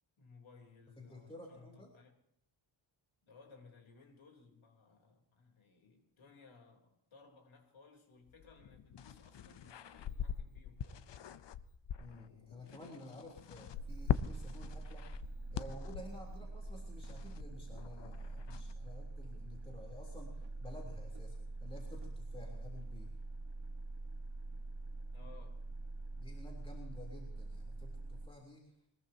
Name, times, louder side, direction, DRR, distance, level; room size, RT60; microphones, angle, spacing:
voice 1, 0.2-2.1 3.3-11.1 25.1-25.7, left 4 dB, 75° left, 3.7 m, -61 dB
voice 2, 1.0-1.9 12.0-15.2 15.5-23.1 26.2-28.8, left 1 dB, 10° left, 3.4 m, -52 dB
sound 1, 8.3-18.7, left 8 dB, 60° left, 0.8 m, -42 dB
sound 2, 13.8-28.3, right 2 dB, 65° right, 1.6 m, -45 dB
22.0 x 21.0 x 2.9 m
wide cardioid pair, 145°, 48 cm